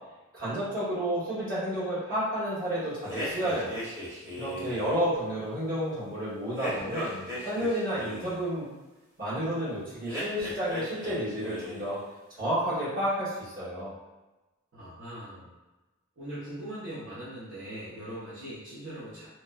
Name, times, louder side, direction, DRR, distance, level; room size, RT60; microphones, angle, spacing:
voice 1, 0.3-3.7 4.3-8.7 9.2-12.0 12.4-13.9, equal, 45° right, -11 dB, 1.3 m, -31 dB
sound 1, 3.1-4.9 6.6-8.4 10.0-11.2 11.4-11.9, equal, 10° right, 0.8 m, -37 dB
voice 2, 14.7-15.5 16.2-19.3, right 1 dB, 70° right, -11 dB, 0.7 m, -40 dB
2.8 x 2.1 x 2.3 m, 1.1 s
head